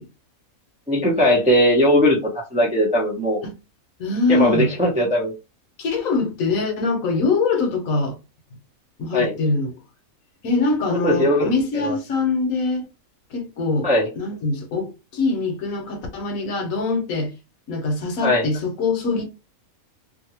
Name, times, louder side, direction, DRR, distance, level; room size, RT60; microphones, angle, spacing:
voice 1, 0.9-3.4 4.3-5.3 9.1-9.3 11.0-11.9 13.8-14.1 18.2-18.5, equal, 10° right, 0.4 m, -19 dB
voice 2, 4.0-4.7 5.8-8.2 9.0-9.7 10.4-12.9 13.3-13.9 14.2-17.3 17.7-19.3, left 3 dB, 70° left, 1.1 m, -23 dB
2.6 x 2.5 x 2.8 m
omnidirectional pair, 1.5 m